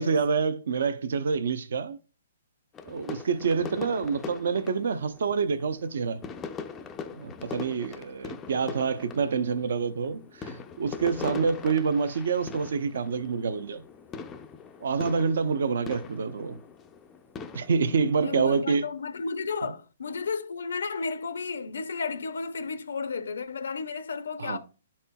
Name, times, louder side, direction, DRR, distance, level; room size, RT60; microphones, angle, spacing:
voice 1, 0.0-2.0 2.9-6.2 7.1-13.8 14.8-16.6 17.5-18.9 24.4-24.6, right 5 dB, 65° right, 0.5 m, -27 dB
sound 1, 2.7-18.6, left 5 dB, 10° left, 0.3 m, -42 dB
voice 2, 18.2-24.6, left 5 dB, 85° left, 0.5 m, -33 dB
11.0 x 4.3 x 2.2 m
hypercardioid pair, 175°, 0 cm